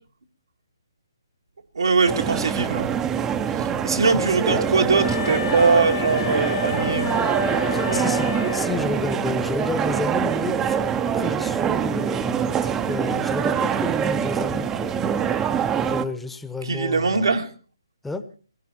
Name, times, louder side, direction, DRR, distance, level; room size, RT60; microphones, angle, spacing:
voice 1, 1.8-2.9 3.8-7.2 7.9-8.0 16.7-17.5, right 4 dB, 80° right, 1.9 m, -21 dB
sound 1, 2.1-16.0, right 8 dB, 15° right, 0.7 m, -24 dB
Wind instrument woodwind instrument, 4.9-9.1, left 9 dB, 50° left, 1.7 m, -30 dB
voice 2, 7.7-14.9 15.8-17.3 18.0-18.2, left 3 dB, 5° left, 1.0 m, -31 dB
19.0 x 16.5 x 4.4 m
hypercardioid pair, 150°, 2 cm